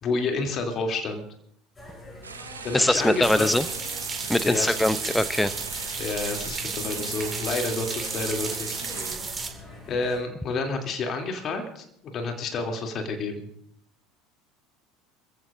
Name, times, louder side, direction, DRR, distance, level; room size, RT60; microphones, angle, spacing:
voice 1, 0.0-1.2 2.6-3.5 4.5-5.1 6.0-8.8 9.9-13.5, left 3 dB, 40° left, 3 dB, 2.8 m, -30 dB
sound 1, 1.7-10.2, left 2 dB, 20° left, 7.9 m, -44 dB
sound 2, 2.2-9.2, right 5 dB, 85° right, 1.1 m, -40 dB
voice 2, 2.7-3.7 4.3-5.5, left 1 dB, 5° left, 14 dB, 0.8 m, -22 dB
sound 3, 3.2-9.5, right 4 dB, 20° right, 2.1 m, -33 dB
27.5 x 15.0 x 2.6 m, 0.69 s
figure-of-eight pair, 70°, 0 cm